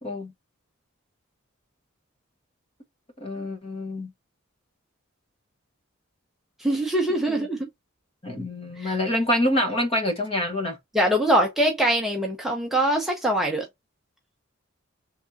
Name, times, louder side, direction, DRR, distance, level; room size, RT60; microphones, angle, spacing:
voice 1, 0.0-0.3 3.2-4.1 7.3-7.5 8.2-10.8, left 1 dB, 25° left, 1.1 m, -26 dB
voice 2, 6.6-7.6 8.8-8.9 10.9-13.7, right 1 dB, ahead, 0.7 m, -23 dB
3.5 x 3.4 x 2.6 m
head